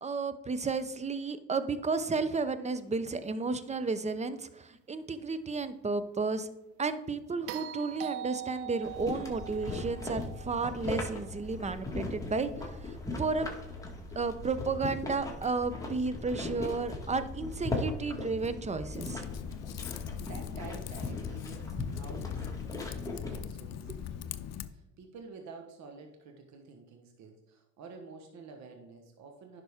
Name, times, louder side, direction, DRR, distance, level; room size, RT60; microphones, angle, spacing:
voice 1, 0.0-6.5 6.8-13.5 14.2-19.2, right 4 dB, 20° right, 12 dB, 0.8 m, -33 dB
sound 1, 7.5-11.7 14.0-14.1, right 12 dB, 90° right, 0.5 m, -43 dB
sound 2, 8.8-23.4, left 2 dB, 10° left, 2.2 m, -39 dB
Typing, 18.9-24.7, left 9 dB, 55° left, 0.6 m, -40 dB
voice 2, 20.2-24.4 24.6-29.6, right 4 dB, 60° right, 4 dB, 1.3 m, -50 dB
10.5 x 5.9 x 3.6 m, 0.90 s
supercardioid pair, 80°, 32 cm